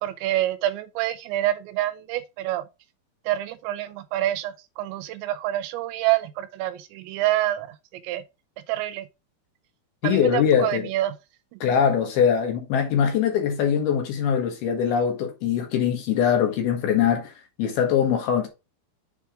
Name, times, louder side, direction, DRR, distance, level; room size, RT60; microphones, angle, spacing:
voice 1, 0.0-2.6 3.3-7.7 8.0-8.2 8.7-9.1 10.0-11.1, right 14 dB, 80° right, 2.8 m, -27 dB
voice 2, 10.0-10.9 11.6-17.3 17.6-18.5, left 8 dB, 70° left, 2.7 m, -22 dB
7.4 x 3.5 x 4.9 m
omnidirectional pair, 5.3 m